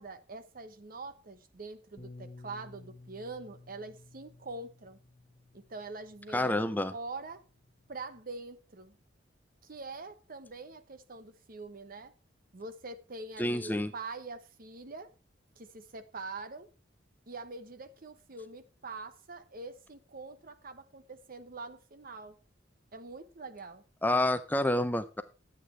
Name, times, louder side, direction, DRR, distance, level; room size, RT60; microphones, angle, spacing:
voice 1, 0.0-5.0 5.5-7.4 7.9-9.0 9.6-12.1 12.5-15.1 15.6-16.7 17.3-22.4 22.9-23.8, right 3 dB, 50° right, 1.1 m, -44 dB
Bass guitar, 2.0-6.5 7.2-8.2, left 2 dB, 40° left, 1.2 m, -54 dB
voice 2, 6.3-6.9 13.4-13.9 24.0-25.2, left 1 dB, 10° left, 0.6 m, -28 dB
11.5 x 8.5 x 4.5 m
head